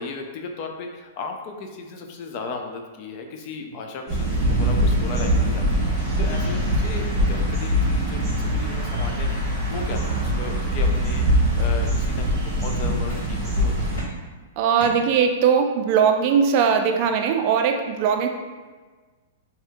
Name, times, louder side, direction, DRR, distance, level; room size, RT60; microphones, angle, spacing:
voice 1, 0.0-13.9, left 4 dB, 40° left, 3 dB, 0.3 m, -35 dB
sound 1, 4.1-14.0, equal, 15° right, 1.1 m, -22 dB
sound 2, 9.7-11.1 11.4-12.2 13.1-13.6 14.0-15.6, left 1 dB, 75° left, 1.4 m, -42 dB
voice 2, 14.6-18.3, right 7 dB, 40° right, 4 dB, 0.4 m, -20 dB
2.7 x 2.6 x 3.5 m, 1.4 s
hypercardioid pair, 155°, 0 cm